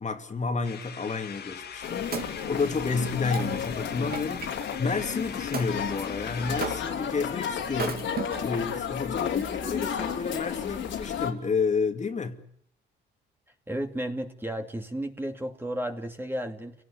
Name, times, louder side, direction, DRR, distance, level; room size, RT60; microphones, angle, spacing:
voice 1, 0.0-12.4, left 4 dB, 35° left, 2.6 m, -31 dB
sound 1, 0.6-6.8, left 7 dB, 55° left, 1.9 m, -42 dB
Wood, 1.6-4.5 5.5-5.8 6.6-7.1 7.7-8.7 9.3-9.4, right 5 dB, 50° right, 2.9 m, -36 dB
sound 2, 1.8-11.3, left 8 dB, 70° left, 3.6 m, -32 dB
voice 2, 13.7-16.7, right 1 dB, 10° right, 2.6 m, -33 dB
29.5 x 18.5 x 8.7 m
cardioid pair, 90°, 20 cm